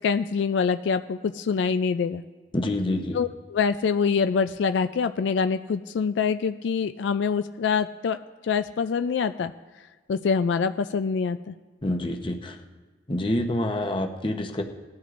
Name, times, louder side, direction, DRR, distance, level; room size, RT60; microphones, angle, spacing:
voice 1, 0.0-2.2 3.1-8.2 8.4-9.5 10.1-11.5, left 5 dB, 80° left, 10 dB, 0.3 m, -25 dB
voice 2, 2.5-3.2 11.8-12.6 13.1-14.6, left 1 dB, 30° left, 4 dB, 0.8 m, -27 dB
19.5 x 12.5 x 2.5 m, 1.3 s
head